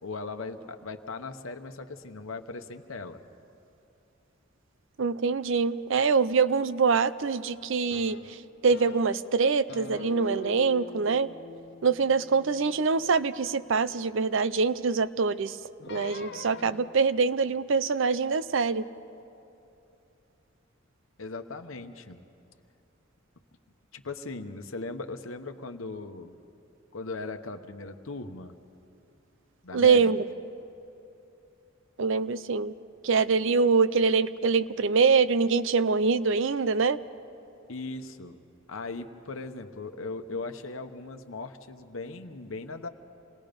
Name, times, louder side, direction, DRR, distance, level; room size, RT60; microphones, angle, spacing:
voice 1, 0.0-3.2 21.2-22.2 23.9-26.4 26.9-28.5 29.6-30.1 37.7-42.9, left 3 dB, 80° left, 7 dB, 1.0 m, -38 dB
voice 2, 5.0-8.4 8.6-11.3 11.8-15.6 15.9-18.8 29.7-30.2 32.0-32.7 33.0-37.0, right 5 dB, 70° right, 14 dB, 0.6 m, -24 dB
sound 1, 7.9-9.3 9.7-14.0 15.8-17.1, left 4 dB, 55° left, 0.8 m, -44 dB
27.5 x 19.0 x 5.2 m, 2.8 s
head